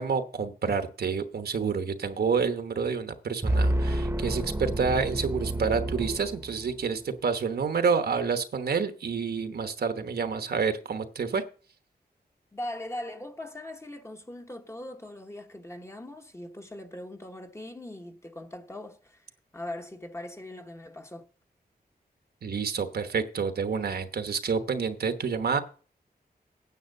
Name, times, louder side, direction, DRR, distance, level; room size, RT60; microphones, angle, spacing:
voice 1, 0.0-11.4 22.4-25.6, right 5 dB, 75° right, 1.1 m, -28 dB
sound 1, 3.4-6.9, right 1 dB, 15° right, 1.0 m, -29 dB
voice 2, 12.5-19.2 19.5-21.3, left 1 dB, 15° left, 1.1 m, -40 dB
9.4 x 7.2 x 6.5 m
wide cardioid pair, 155°, 17 cm